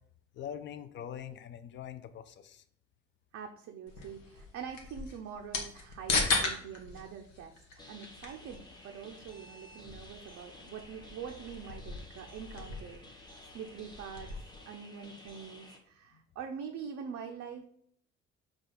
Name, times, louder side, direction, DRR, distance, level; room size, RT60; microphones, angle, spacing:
voice 1, 0.3-2.6, left 9 dB, 30° left, 12 dB, 0.4 m, -43 dB
voice 2, 3.3-14.3 14.7-17.6, right 7 dB, 40° right, 3 dB, 0.5 m, -44 dB
sound 1, 3.9-14.6, left 3 dB, 85° left, 0.7 m, -38 dB
sound 2, 7.8-15.8, left 1 dB, 10° left, 0.8 m, -53 dB
5.1 x 2.4 x 3.8 m, 0.67 s
figure-of-eight pair, 50°, 38 cm